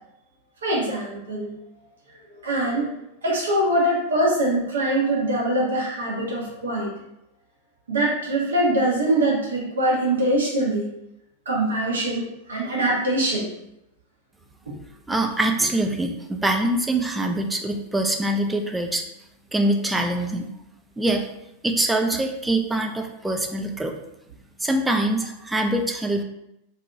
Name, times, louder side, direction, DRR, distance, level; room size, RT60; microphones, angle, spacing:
voice 1, 0.6-1.5 2.4-2.9 3.2-6.9 7.9-10.9 11.5-13.5, right 1 dB, 70° right, -4 dB, 1.0 m, -23 dB
voice 2, 15.1-19.0 19.5-20.5 21.0-21.3 21.6-23.9 24.6-26.2, right 1 dB, 5° right, 3 dB, 0.3 m, -24 dB
2.7 x 2.6 x 2.3 m, 0.84 s
figure-of-eight pair, 90°, 0 cm